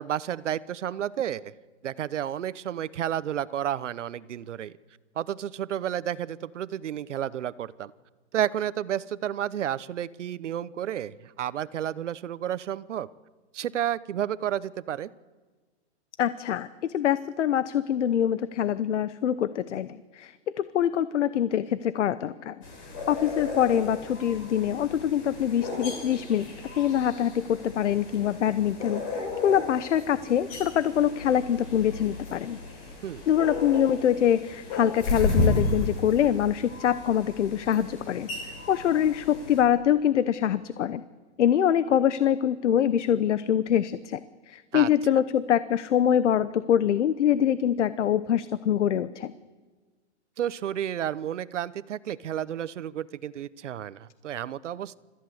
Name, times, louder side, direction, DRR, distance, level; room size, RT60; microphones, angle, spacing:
voice 1, 0.0-1.5 1.8-4.7 5.2-7.9 8.3-13.1 13.5-15.1 33.0-33.2 44.7-44.9 50.4-55.0, right 10 dB, 85° right, 17 dB, 1.0 m, -31 dB
voice 2, 16.2-19.9 20.2-20.3 20.6-22.5 23.1-26.5 26.8-32.6 33.3-38.3 38.7-41.0 41.4-44.2 44.5-49.3, left 10 dB, 80° left, 14 dB, 0.9 m, -24 dB
sound 1, 22.6-39.6, left 2 dB, 30° left, 5.9 m, -34 dB
30.0 x 14.5 x 7.9 m, 1.4 s
hypercardioid pair, 170°, 35 cm